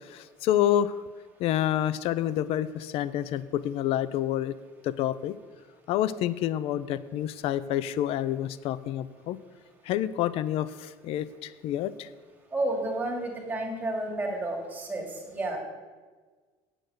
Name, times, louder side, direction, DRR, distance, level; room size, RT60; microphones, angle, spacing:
voice 1, 0.0-0.9 1.4-4.5 4.8-5.4 5.9-9.4 9.9-12.1, left 11 dB, 60° left, 16 dB, 0.5 m, -28 dB
voice 2, 12.5-15.6, right 2 dB, 15° right, 0 dB, 2.5 m, -31 dB
8.8 x 7.9 x 8.0 m, 1.4 s
cardioid pair, 140°, 11 cm